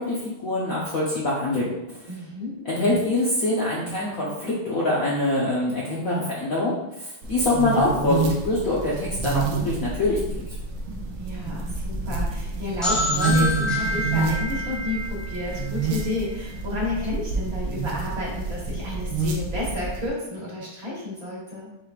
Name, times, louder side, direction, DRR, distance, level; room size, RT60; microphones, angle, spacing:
voice 1, 0.0-2.1 2.6-10.6, left 2 dB, 55° left, -6 dB, 1.0 m, -24 dB
voice 2, 2.1-2.7 11.2-21.7, left 2 dB, 50° right, -5 dB, 1.6 m, -31 dB
sound 1, 7.2-20.1, right 3 dB, 80° right, 1.5 m, -28 dB
sound 2, 12.8-16.5, left 1 dB, ahead, 0.3 m, -28 dB
5.7 x 3.6 x 2.4 m, 0.91 s
omnidirectional pair, 2.3 m